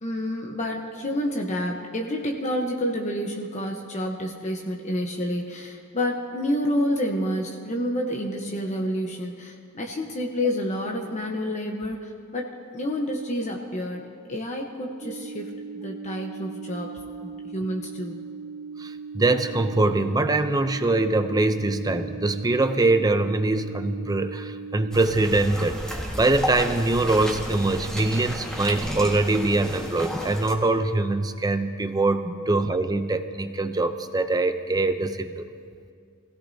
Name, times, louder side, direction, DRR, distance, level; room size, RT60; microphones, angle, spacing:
voice 1, 0.0-15.5 15.7-18.2, equal, 30° left, 0 dB, 1.0 m, -29 dB
sound 1, 15.0-25.0, right 5 dB, 40° right, 1.1 m, -39 dB
voice 2, 18.8-35.5, right 2 dB, 15° right, 8 dB, 0.6 m, -23 dB
sound 2, 24.9-30.5, equal, 5° left, 1.7 m, -33 dB
25.5 x 16.5 x 2.8 m, 2.2 s
head